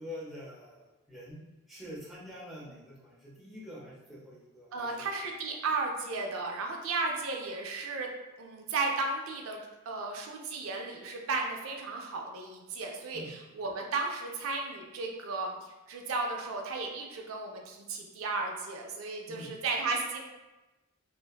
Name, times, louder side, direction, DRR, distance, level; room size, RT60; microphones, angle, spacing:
voice 1, 0.0-1.4 1.7-5.1 13.1-13.3 19.3-19.5, left 1 dB, ahead, -8 dB, 0.5 m, -46 dB
voice 2, 4.7-8.1 8.4-15.6 15.9-20.2, right 3 dB, 70° right, 2 dB, 0.3 m, -34 dB
2.5 x 2.1 x 2.2 m, 1.1 s
head